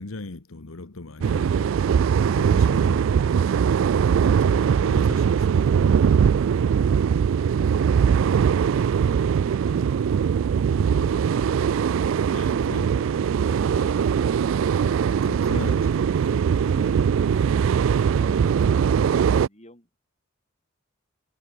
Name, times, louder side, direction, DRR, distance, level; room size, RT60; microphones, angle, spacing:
voice 1, 0.0-3.2 4.1-6.1 8.3-8.5 10.8-11.1 12.3-13.0 15.2-16.4, left 2 dB, 80° left, 1.3 m, -39 dB
sound 1, 1.2-19.5, right 7 dB, 65° right, 0.3 m, -21 dB
voice 2, 6.7-7.5 8.7-12.2 12.7-14.2 16.6-17.7 18.0-19.9, left 1 dB, 30° left, 7.5 m, -50 dB
head